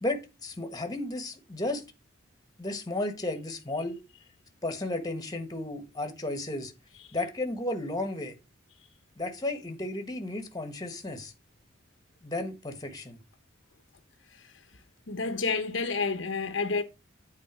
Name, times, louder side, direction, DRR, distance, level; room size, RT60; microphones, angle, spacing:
voice 1, 0.0-1.8 2.6-4.0 4.6-6.7 7.1-8.4 9.2-11.3 12.2-13.2, left 2 dB, 20° left, 1.4 m, -33 dB
voice 2, 15.1-16.8, left 4 dB, 70° left, 1.0 m, -29 dB
8.6 x 4.1 x 6.2 m
head